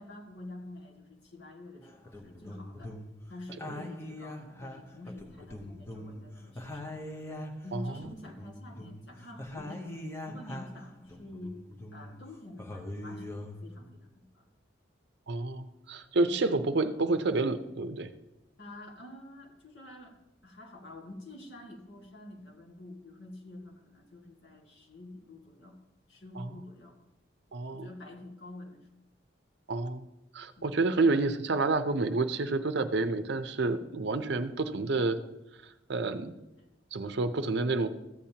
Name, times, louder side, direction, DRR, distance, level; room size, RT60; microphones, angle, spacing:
voice 1, 0.0-2.9 3.3-7.0 7.6-9.9 10.3-11.6 11.9-14.5 16.2-16.4 18.6-20.2 20.4-25.8 26.1-27.0 27.7-28.8 30.6-30.8, left 1 dB, 65° left, 0 dB, 1.8 m, -47 dB
sound 1, 1.9-3.2 3.5-6.2 6.5-10.8 11.1-12.2 12.6-13.7, left 1 dB, 15° left, 0.8 m, -42 dB
voice 2, 7.7-8.1 15.3-18.1 26.4-26.5 27.5-27.9 29.7-30.1 30.3-35.2 35.9-36.3 36.9-37.9, right 3 dB, 60° right, 9 dB, 0.6 m, -29 dB
14.0 x 8.7 x 2.8 m, 0.97 s
head